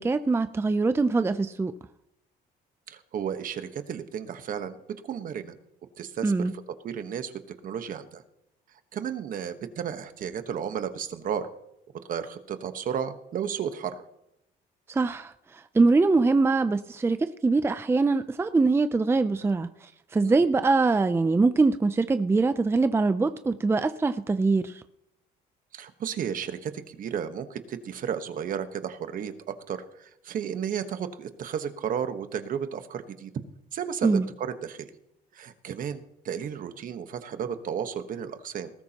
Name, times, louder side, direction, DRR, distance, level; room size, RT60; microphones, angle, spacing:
voice 1, 0.0-1.7 6.2-6.5 14.9-24.8 34.0-34.3, right 3 dB, 15° right, 11 dB, 0.5 m, -23 dB
voice 2, 2.9-4.8 5.0-5.5 6.0-6.5 6.8-7.3 7.6-8.2 8.9-11.5 12.1-13.9 20.2-20.4 25.7-33.3 33.7-34.9 35.3-38.7, right 8 dB, 55° right, 9 dB, 1.3 m, -33 dB
19.5 x 13.0 x 2.9 m, 0.82 s
cardioid pair, 110°, 17 cm